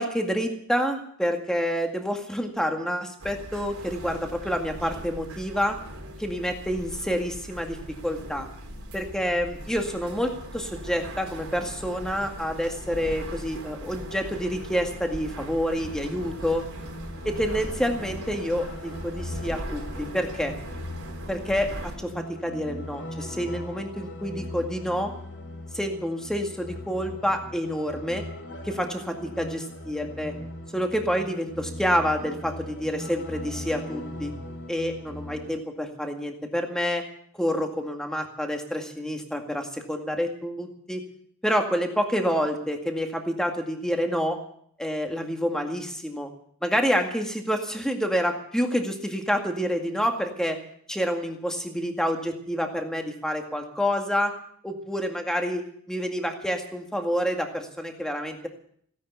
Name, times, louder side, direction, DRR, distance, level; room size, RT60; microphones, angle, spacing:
voice 1, 0.0-5.8 6.2-7.8 8.0-8.5 8.9-16.7 17.3-20.6 21.3-25.1 25.7-28.2 28.6-30.3 30.7-34.3 34.7-37.0 37.4-41.0 41.4-44.4 44.8-46.3 46.6-50.6 50.9-54.3 54.6-58.5, equal, 5° left, 3 dB, 2.1 m, -28 dB
sound 1, 3.2-22.0, right 1 dB, 75° right, 4.0 m, -39 dB
sound 2, 15.8-35.6, left 1 dB, 55° left, 2.7 m, -39 dB
16.5 x 10.5 x 8.2 m, 0.64 s
head